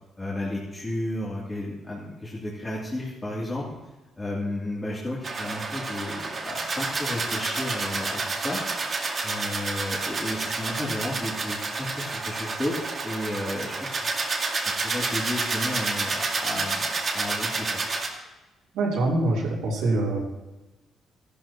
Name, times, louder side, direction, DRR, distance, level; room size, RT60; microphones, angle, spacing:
voice 1, 0.2-3.6 4.2-8.6 9.2-14.2 14.8-16.9 17.1-17.8, left 1 dB, 20° left, -7 dB, 3.1 m, -33 dB
sound 1, 5.2-18.1, right 3 dB, 40° right, 2.1 m, -29 dB
voice 2, 18.7-20.2, right 2 dB, 85° right, -6 dB, 3.5 m, -24 dB
15.0 x 12.0 x 3.0 m, 1.1 s
cardioid pair, 90°, 0 cm